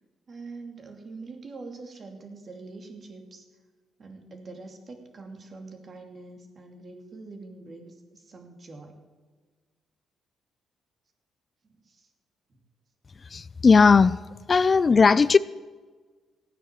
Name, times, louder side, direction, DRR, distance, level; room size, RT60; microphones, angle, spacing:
voice 1, 0.3-3.5 4.0-9.0 11.7-12.1 12.5-12.6, right 3 dB, 40° right, 4 dB, 2.8 m, -44 dB
voice 2, 13.3-14.2 14.5-15.4, left 5 dB, 35° left, 18 dB, 0.3 m, -17 dB
16.0 x 9.3 x 7.5 m, 1.4 s
cardioid pair, 90°, 0 cm